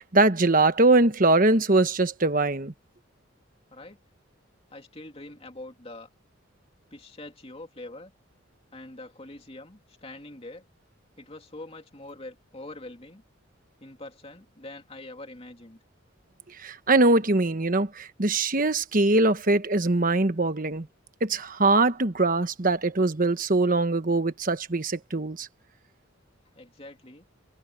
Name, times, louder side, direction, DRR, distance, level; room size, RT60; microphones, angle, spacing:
voice 1, 0.0-2.7 16.6-20.9 21.2-25.5, right 2 dB, 40° right, 1.2 m, -22 dB
voice 2, 4.7-6.1 6.9-8.1 8.7-10.6 11.2-13.2 13.8-15.8 26.5-27.2, left 2 dB, 30° left, 2.8 m, -44 dB
head